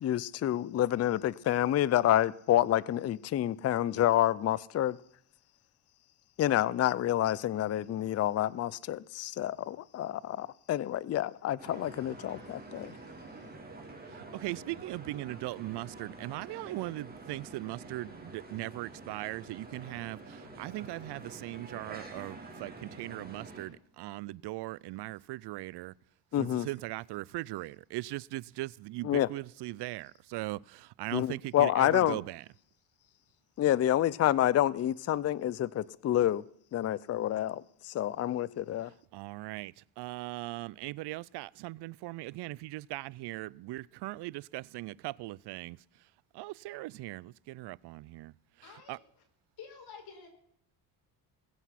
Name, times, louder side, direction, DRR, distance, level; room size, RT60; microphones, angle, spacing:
voice 1, 0.0-5.0 6.4-12.9 26.3-26.7 29.0-29.3 31.1-32.2 33.6-36.4 36.7-38.9, left 12 dB, 40° left, 0.5 m, -28 dB
sound 1, 11.6-23.6, right 2 dB, 20° right, 4.7 m, -48 dB
voice 2, 14.3-25.9 26.4-32.4 39.1-45.8 46.3-48.3 48.9-49.0, right 18 dB, 75° right, 0.5 m, -39 dB
voice 3, 48.6-49.2 49.6-50.3, left 6 dB, 60° left, 4.9 m, -50 dB
20.5 x 8.1 x 5.8 m
cardioid pair, 120°, 41 cm